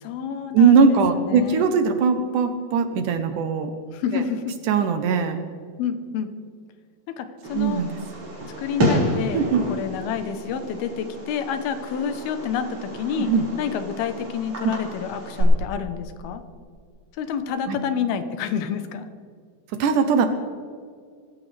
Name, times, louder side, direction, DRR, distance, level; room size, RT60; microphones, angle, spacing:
voice 1, 0.0-1.7 3.9-4.5 5.8-6.3 7.2-7.8 8.6-13.3 13.6-16.4 17.2-19.1, left 7 dB, 90° left, 9 dB, 2.9 m, -29 dB
voice 2, 0.5-3.7 4.1-4.2 4.7-5.4 7.5-8.0 9.3-9.6 13.2-13.4 14.6-14.7 17.7-17.8 19.7-20.3, right 5 dB, 70° right, 8 dB, 2.2 m, -20 dB
Fireworks, 7.4-15.4, equal, 45° right, 5.3 m, -30 dB
24.5 x 14.0 x 3.4 m, 2.1 s
omnidirectional pair, 4.3 m